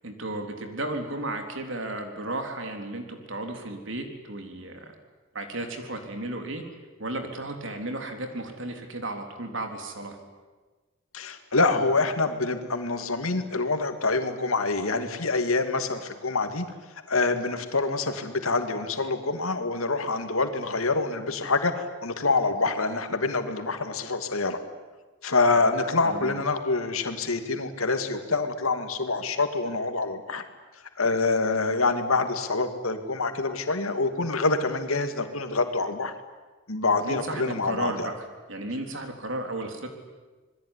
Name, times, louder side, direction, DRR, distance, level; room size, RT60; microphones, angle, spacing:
voice 1, 0.0-5.0 5.3-6.6 7.0-10.2 25.6-25.7 26.0-26.4 37.0-39.9, right 2 dB, 60° right, 5 dB, 3.6 m, -34 dB
voice 2, 11.1-16.7 17.1-24.6 25.2-30.4 31.0-36.1 36.7-38.1, left 3 dB, 85° left, 7 dB, 2.6 m, -26 dB
27.5 x 21.0 x 10.0 m, 1.3 s
head